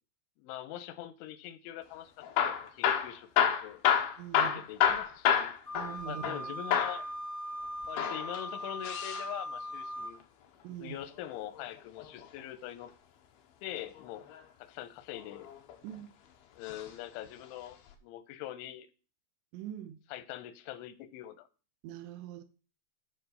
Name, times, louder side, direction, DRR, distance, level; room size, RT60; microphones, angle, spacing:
voice 1, 0.4-3.3 3.6-3.8 4.3-5.5 6.1-7.1 7.9-10.2 10.7-12.9 13.6-14.2 14.6-15.5 16.5-17.8 18.0-18.9 20.1-21.5, left 12 dB, 90° left, 3.3 m, -43 dB
Hammer / Drill, 2.2-6.4 6.7-7.0 7.8-9.3 11.0-12.3 14.0-14.4 15.1-16.0 16.6-16.9 17.2-17.3 17.9-18.0, left 9 dB, 70° left, 2.5 m, -29 dB
voice 2, 4.2-4.6 5.7-6.5 10.6-11.0 15.8-16.1 19.5-20.0 21.8-22.4, right 10 dB, 80° right, 2.9 m, -43 dB
Wind instrument woodwind instrument, 5.6-10.2, equal, 10° left, 0.9 m, -40 dB
11.0 x 4.7 x 6.7 m
omnidirectional pair, 5.3 m